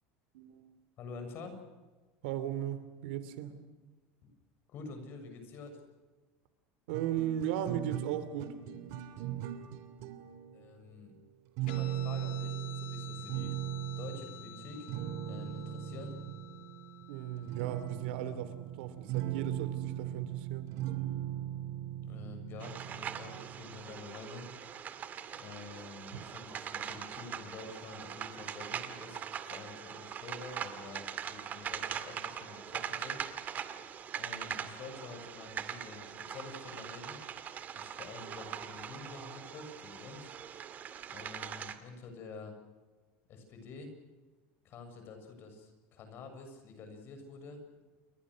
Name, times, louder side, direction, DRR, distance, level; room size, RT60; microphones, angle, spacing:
voice 1, 0.3-0.7 2.2-3.5 6.9-8.6 17.1-20.8 26.1-26.3, right 10 dB, 80° right, 12 dB, 2.9 m, -37 dB
voice 2, 1.0-1.6 4.2-4.3 4.7-5.8 10.5-11.2 11.6-13.5 14.0-14.9 15.2-16.2 22.0-24.5 25.3-33.3 34.1-37.2 37.7-40.3 41.1-42.5 43.3-43.9 44.6-47.8, left 4 dB, 40° left, 6 dB, 6.9 m, -48 dB
sound 1, 6.9-10.8 11.6-24.0, right 12 dB, 60° right, 2.9 m, -39 dB
Guitar, 11.7-18.6, left 13 dB, 85° left, 2.9 m, -51 dB
sound 2, 22.6-41.7, right 8 dB, 30° right, 2.0 m, -42 dB
29.5 x 23.0 x 6.4 m, 1.3 s
cardioid pair, 155°, 6 cm